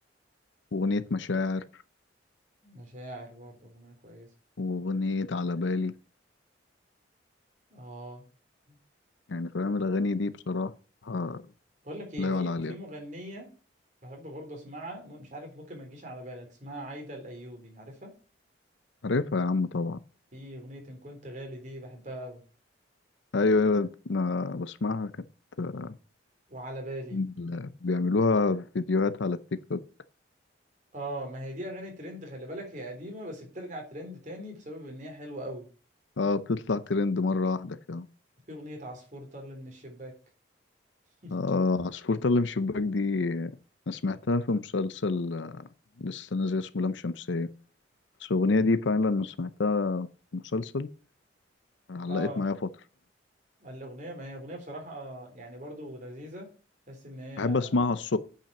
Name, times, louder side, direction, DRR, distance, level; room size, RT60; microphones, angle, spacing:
voice 1, 0.7-1.6 4.6-5.9 9.3-10.7 11.0-11.4 12.2-12.8 19.0-20.0 23.3-25.1 25.6-26.0 27.1-29.4 29.7-29.8 36.2-38.1 41.3-43.5 43.9-45.7 46.0-47.5 48.2-50.1 50.3-50.9 51.9-52.6 57.4-58.2, left 3 dB, 75° left, 0.6 m, -28 dB
voice 2, 2.6-4.3 7.7-8.2 8.7-8.8 11.8-13.5 14.0-18.1 20.3-22.4 26.5-27.2 30.9-35.7 38.5-40.1 41.2-41.3 52.0-52.5 53.6-56.5 56.9-57.8, equal, 40° right, 3.8 m, -41 dB
8.9 x 5.7 x 7.1 m
head